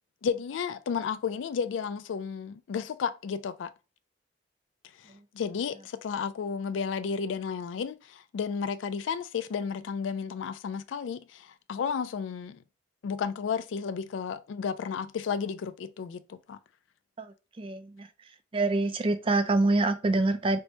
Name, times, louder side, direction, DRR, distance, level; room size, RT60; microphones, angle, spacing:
voice 1, 0.2-3.7 5.0-12.6 13.0-16.6, left 6 dB, 90° left, 0.3 m, -33 dB
voice 2, 17.2-18.1 18.5-20.6, right 2 dB, 30° right, 0.4 m, -26 dB
4.4 x 2.1 x 2.7 m
head